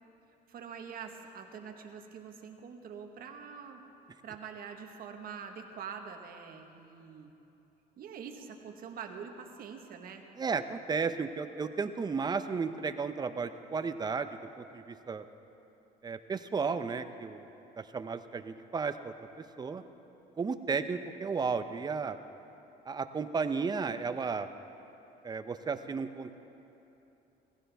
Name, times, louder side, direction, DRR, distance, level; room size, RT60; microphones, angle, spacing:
voice 1, 0.5-3.8 4.2-7.3 8.0-10.2, right 6 dB, 60° right, 4 dB, 1.3 m, -45 dB
voice 2, 10.4-14.3 14.6-15.2 16.0-17.5 17.8-19.3 19.6-19.8 20.4-22.2 22.9-24.5 25.2-26.4, right 5 dB, 25° right, 9 dB, 0.6 m, -33 dB
17.5 x 15.0 x 3.5 m, 3.0 s
cardioid pair, 110°, 17 cm